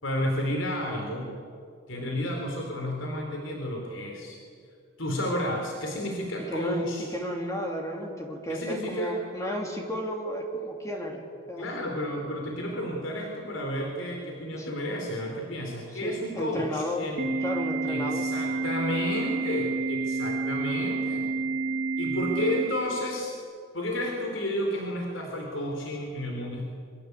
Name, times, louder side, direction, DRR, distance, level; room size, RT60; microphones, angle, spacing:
voice 1, 0.0-1.3 1.9-4.4 5.0-7.1 8.5-9.1 11.6-17.3 17.9-21.3 22.0-23.3 23.7-26.7, left 1 dB, 70° left, 1 dB, 4.3 m, -31 dB
voice 2, 6.5-11.7 14.6-14.8 15.9-17.1 17.4-18.2, equal, 15° left, 0 dB, 3.0 m, -33 dB
Organ, 17.2-23.2, right 3 dB, 50° right, 3.1 m, -29 dB
27.0 x 24.0 x 8.4 m, 2.3 s
head